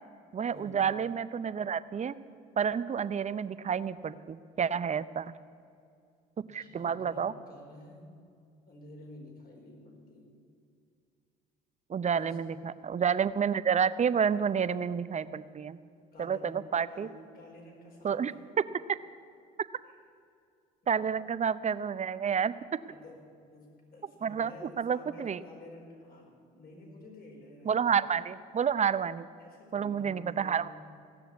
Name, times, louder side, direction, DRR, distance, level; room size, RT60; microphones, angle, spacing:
voice 1, 0.3-2.2 2.6-5.3 6.5-7.3 11.9-15.8 16.2-17.1 18.0-18.3 18.9-19.0 20.9-22.5 24.2-25.4 27.6-29.3 29.7-30.7, right 7 dB, 35° right, 15 dB, 0.6 m, -29 dB
voice 2, 6.4-8.1 8.7-10.4 12.1-12.6 16.1-18.2 21.0-21.1 22.9-27.7 29.4-30.7, left 1 dB, 45° left, 0 dB, 4.6 m, -50 dB
17.0 x 6.9 x 9.3 m, 2.4 s
supercardioid pair, 65°, 21 cm